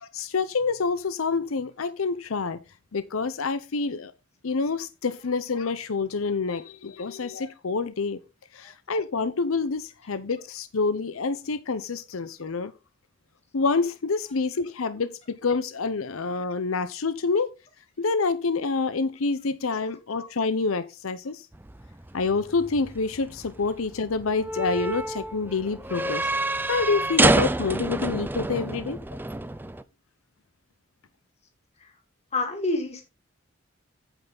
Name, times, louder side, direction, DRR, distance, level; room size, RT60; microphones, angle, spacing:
voice 1, 0.0-2.6 2.9-4.1 4.4-8.2 8.5-12.7 13.5-17.5 18.0-21.5 22.1-26.3 26.7-29.0, left 4 dB, 90° left, 0.7 m, -27 dB
sound 1, 21.5-29.8, right 2 dB, 10° right, 0.4 m, -28 dB
voice 2, 32.3-33.0, left 2 dB, 30° left, 2.8 m, -28 dB
9.0 x 8.1 x 3.8 m
head